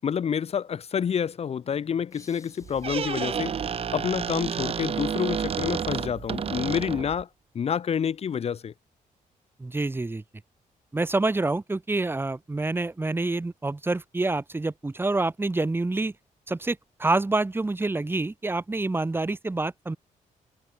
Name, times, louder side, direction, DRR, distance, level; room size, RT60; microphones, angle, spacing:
voice 1, 0.0-3.6 3.9-7.3 7.5-8.7, left 7 dB, 45° left, 1.0 m, -28 dB
sound 1, 2.1-5.5, left 3 dB, 20° left, 6.9 m, -59 dB
Squeak, 2.6-7.2, right 7 dB, 45° right, 0.8 m, -30 dB
voice 2, 9.6-10.2 10.9-16.1 16.5-20.0, right 2 dB, 15° right, 1.5 m, -27 dB
cardioid pair, 115°, 14 cm